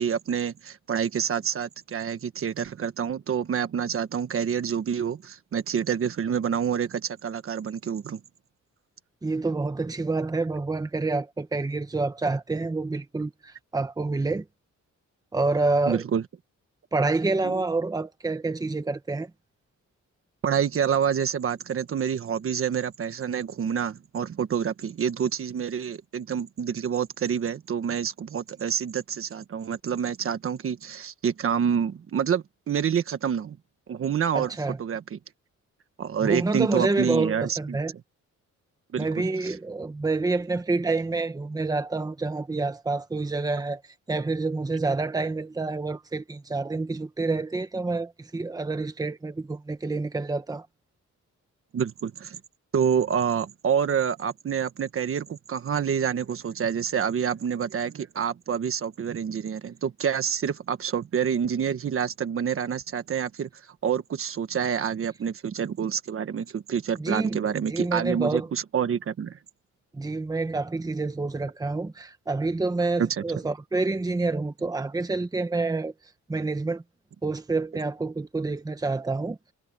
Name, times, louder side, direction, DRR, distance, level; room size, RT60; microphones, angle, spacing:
voice 1, 0.0-8.2 15.9-16.2 17.4-17.6 20.4-33.6 33.9-34.5 34.8-35.2 36.0-37.8 38.9-39.5 51.7-52.4 52.7-63.5 63.8-69.4 73.0-73.2, right 7 dB, 45° right, 1.4 m, -27 dB
voice 2, 9.2-14.4 15.3-16.0 16.9-19.3 34.3-34.8 36.2-37.9 39.0-43.8 44.1-50.7 67.0-67.4 67.7-68.5 69.9-75.9 76.3-76.8 77.2-79.4, right 3 dB, 10° right, 1.2 m, -28 dB
wide cardioid pair, 180°, 30 cm